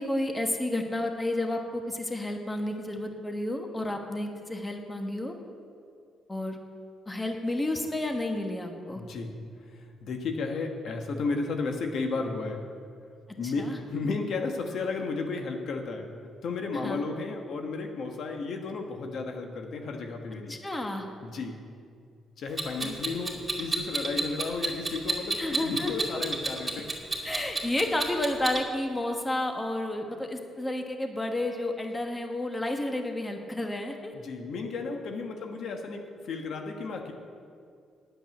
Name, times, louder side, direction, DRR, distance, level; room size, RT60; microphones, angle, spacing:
voice 1, 0.0-5.3 6.3-6.6 7.1-9.0 13.4-13.8 16.8-17.0 20.5-21.1 22.8-22.9 25.4-26.1 27.2-34.1, left 1 dB, 15° left, 4 dB, 1.3 m, -31 dB
voice 2, 8.9-9.3 9.7-12.6 13.4-16.1 16.4-20.6 21.2-21.6 22.4-26.9 34.1-37.1, left 4 dB, 65° left, 4 dB, 1.3 m, -33 dB
Clock, 22.6-28.6, right 3 dB, 20° right, 2.2 m, -30 dB
9.2 x 7.9 x 9.4 m, 2.3 s
cardioid pair, 90°, 0 cm